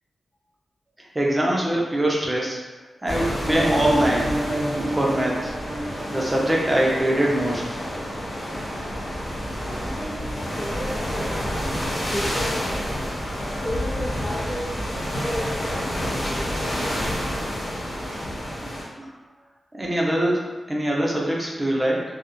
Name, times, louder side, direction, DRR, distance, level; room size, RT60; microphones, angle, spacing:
voice 1, 1.1-2.6 3.0-4.3 4.9-5.5 6.1-7.8 18.6-18.7 19.7-22.0, right 1 dB, 20° right, -3 dB, 0.5 m, -23 dB
sound 1, 3.1-18.8, equal, 75° left, 0.9 m, -29 dB
sound 2, 3.4-8.8, right 1 dB, 80° right, 0.4 m, -31 dB
voice 2, 9.4-11.4 11.9-13.1 13.6-16.8, equal, 45° left, -3 dB, 0.5 m, -34 dB
2.3 x 2.0 x 2.9 m, 1.2 s
wide cardioid pair, 85°, 0 cm